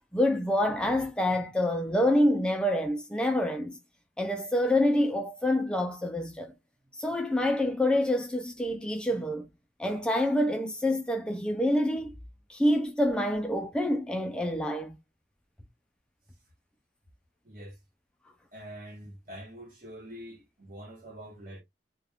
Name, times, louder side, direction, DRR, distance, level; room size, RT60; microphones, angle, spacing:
voice 1, 0.1-3.8 4.2-6.5 7.0-9.5 9.8-12.1 12.5-15.0, left 1 dB, 5° left, 0.3 m, -27 dB
voice 2, 17.4-17.8 18.5-21.6, equal, 50° right, 1.0 m, -45 dB
2.3 x 2.2 x 3.4 m
head